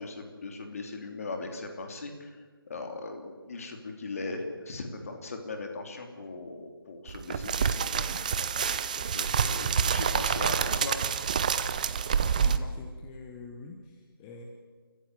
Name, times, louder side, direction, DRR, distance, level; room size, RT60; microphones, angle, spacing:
voice 1, 0.0-11.0 12.1-12.7, left 3 dB, 35° left, 5 dB, 3.1 m, -39 dB
sound 1, 7.1-12.6, right 7 dB, 20° right, 0.6 m, -27 dB
voice 2, 12.3-14.4, left 4 dB, 10° left, 3 dB, 1.1 m, -45 dB
30.0 x 14.5 x 8.1 m, 1.5 s
figure-of-eight pair, 160°, 13 cm